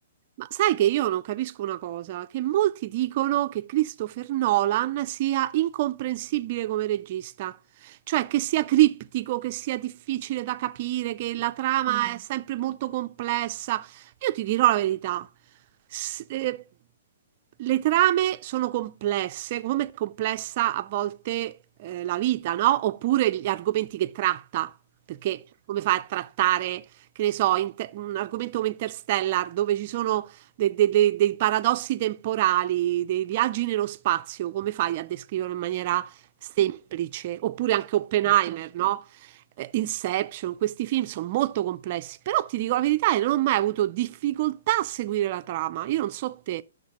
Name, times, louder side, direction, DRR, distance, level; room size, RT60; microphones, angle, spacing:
voice 1, 0.4-7.6 7.8-15.3 15.9-16.6 17.6-24.7 25.1-25.4 25.7-26.8 27.2-30.3 30.6-36.1 36.6-39.0 39.6-46.6, right 14 dB, 35° right, 0.4 m, -26 dB
13.5 x 6.5 x 2.9 m
hypercardioid pair, 175°, 0 cm